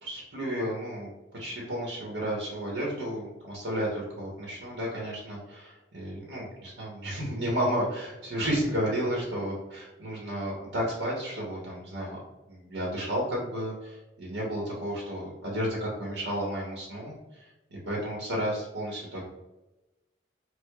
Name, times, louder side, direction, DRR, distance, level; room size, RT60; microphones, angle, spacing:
voice 1, 0.0-1.1 1.4-12.2 12.5-19.2, equal, 75° right, -3 dB, 0.9 m, -32 dB
4.5 x 2.1 x 2.2 m, 1.0 s
head